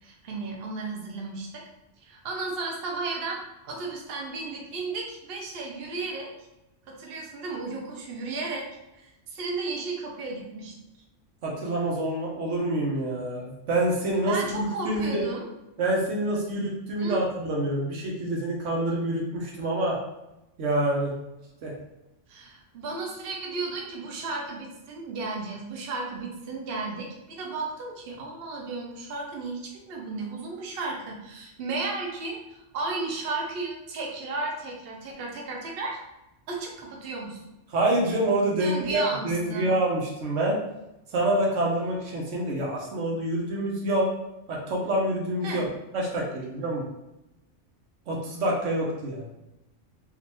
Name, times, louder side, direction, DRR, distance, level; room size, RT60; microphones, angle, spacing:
voice 1, 0.0-1.6 2.0-3.4 3.6-6.3 6.9-8.7 8.9-10.7 14.2-15.4 17.0-17.2 22.3-36.0 36.5-37.4 38.6-39.7 45.4-45.6, right 3 dB, 60° right, -1 dB, 0.8 m, -34 dB
voice 2, 11.4-15.2 15.8-20.0 20.6-21.2 21.6-21.7 37.7-40.6 41.1-44.1 44.5-45.6 45.9-46.9 48.1-49.3, right 1 dB, 85° right, -2 dB, 1.2 m, -27 dB
3.6 x 2.4 x 3.0 m, 0.93 s
omnidirectional pair, 1.2 m